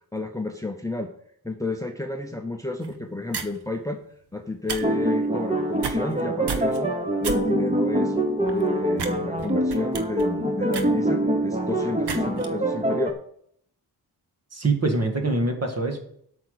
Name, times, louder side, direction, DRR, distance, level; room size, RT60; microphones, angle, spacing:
voice 1, 0.1-1.1 1.4-4.0 4.3-6.9 7.2-8.2 8.5-13.1, left 2 dB, 10° left, 5 dB, 0.7 m, -31 dB
sound 1, 2.8-3.0 3.3-3.6 4.5-4.8 5.1-5.3 5.7-6.2 6.5-6.8 7.2-7.4 7.8-7.9 8.4-8.6 8.9-9.1 9.4-11.5 12.0-12.5, right 5 dB, 85° right, 1.1 m, -32 dB
sound 2, 4.8-13.1, right 1 dB, 15° right, 1.2 m, -25 dB
voice 2, 14.5-16.0, right 3 dB, 40° right, 4 dB, 2.0 m, -24 dB
8.4 x 6.0 x 8.1 m, 0.66 s
wide cardioid pair, 135°, 39 cm